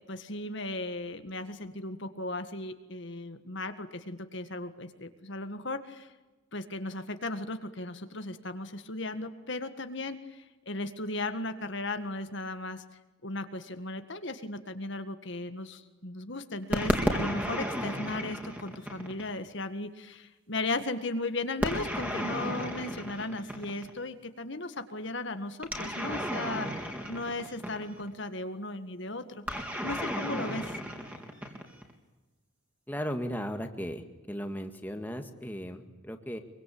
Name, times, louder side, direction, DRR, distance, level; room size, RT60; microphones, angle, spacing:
voice 1, 0.1-6.1 6.5-12.8 13.2-29.2 29.5-30.8, left 2 dB, 60° left, 8 dB, 1.8 m, -36 dB
sound 1, 16.7-19.4 21.6-24.0 25.6-28.1 29.5-31.9, equal, 5° right, 3.6 m, -33 dB
voice 2, 32.9-36.4, equal, 10° left, 5 dB, 1.9 m, -36 dB
25.0 x 24.0 x 8.7 m, 1.1 s
head